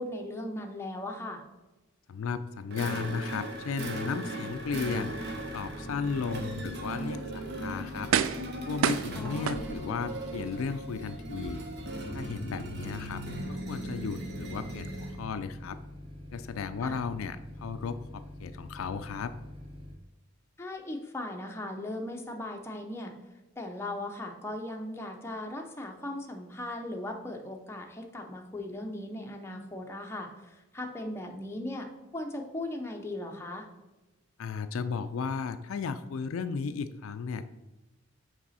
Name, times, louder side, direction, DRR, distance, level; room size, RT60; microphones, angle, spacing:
voice 1, 0.0-1.4 9.2-9.6 16.8-17.0 20.6-23.1 23.6-31.9 32.1-33.7, left 1 dB, 10° left, 1 dB, 0.6 m, -38 dB
voice 2, 2.1-5.2 5.5-8.1 8.7-11.6 12.1-13.2 13.5-15.8 16.3-19.3 34.4-37.5, left 5 dB, 75° left, 11 dB, 0.4 m, -35 dB
sound 1, 2.7-15.2, right 1 dB, 50° right, 0.9 m, -38 dB
sound 2, 4.5-19.9, left 1 dB, 25° right, 0.9 m, -46 dB
sound 3, 7.2-7.3 8.1-8.5 8.8-10.1 10.6-10.7, right 8 dB, 70° right, 0.3 m, -28 dB
6.0 x 4.8 x 4.1 m, 1.1 s
head